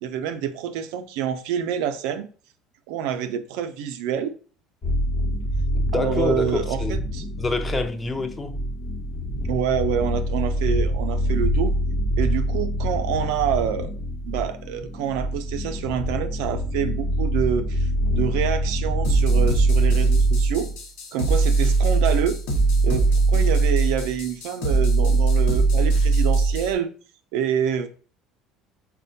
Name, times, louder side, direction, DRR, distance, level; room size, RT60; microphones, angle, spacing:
voice 1, 0.0-2.3 2.9-4.3 5.9-7.2 9.5-11.7 12.2-13.9 14.2-20.7 21.1-22.4 22.8-26.9 27.3-27.9, right 8 dB, 80° right, 0.4 m, -27 dB
sound 1, 4.8-20.7, equal, 40° left, 0.8 m, -26 dB
voice 2, 5.7-7.0 7.4-8.6, left 3 dB, 20° left, 0.5 m, -27 dB
sound 2, 19.0-26.7, right 3 dB, 80° left, 0.9 m, -20 dB
4.2 x 2.1 x 2.6 m
supercardioid pair, 90°, 0 cm